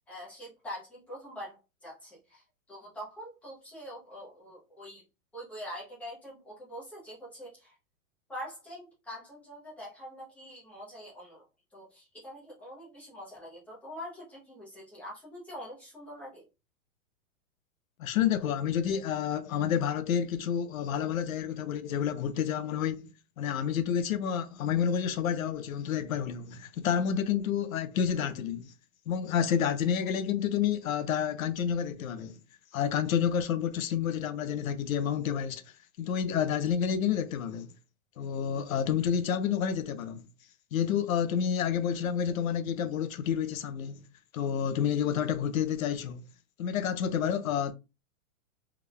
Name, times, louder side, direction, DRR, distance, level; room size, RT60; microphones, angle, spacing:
voice 1, 0.1-5.0 5.3-7.8 8.3-11.4 11.7-16.5, equal, 5° left, 0.8 m, -44 dB
voice 2, 18.0-23.1 23.4-28.7 29.1-32.4 32.7-35.6 36.0-37.7 38.2-40.3 40.7-44.0 44.3-46.2 46.6-47.7, left 8 dB, 75° left, 0.7 m, -29 dB
3.5 x 3.4 x 2.2 m
supercardioid pair, 170°, 42 cm